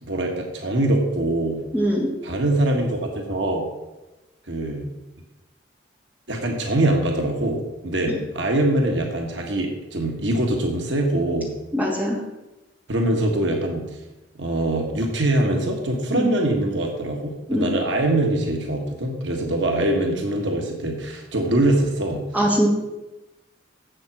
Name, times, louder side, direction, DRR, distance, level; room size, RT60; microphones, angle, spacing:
voice 1, 0.0-1.6 2.2-3.7 4.5-4.9 6.3-11.5 12.9-13.8 14.4-22.2, right 1 dB, 75° right, 2 dB, 1.6 m, -23 dB
voice 2, 1.7-2.1 11.7-12.2 16.1-16.3 17.5-17.7 22.3-22.7, equal, 10° right, -3 dB, 2.6 m, -21 dB
7.7 x 7.5 x 7.4 m, 1.0 s
head